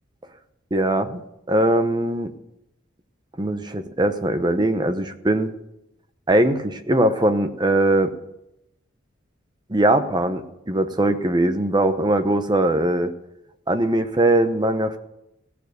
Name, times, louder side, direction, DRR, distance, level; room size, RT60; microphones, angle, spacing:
voice 1, 0.7-1.2 1.5-2.3 3.4-5.5 6.3-8.1 9.7-13.1 13.7-15.0, right 1 dB, 20° right, 8 dB, 0.9 m, -21 dB
16.5 x 6.6 x 6.8 m, 0.85 s
head